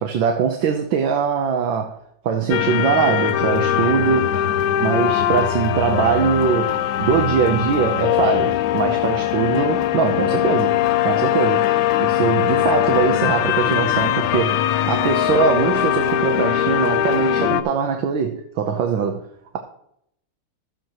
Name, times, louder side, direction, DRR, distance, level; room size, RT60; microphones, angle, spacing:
voice 1, 0.0-2.0 2.2-4.3 4.8-11.7 12.0-19.2, right 7 dB, 75° right, 1.6 m, -22 dB
sound 1, 2.5-17.6, left 11 dB, 75° left, 1.3 m, -21 dB
14.0 x 7.6 x 3.0 m
omnidirectional pair, 2.2 m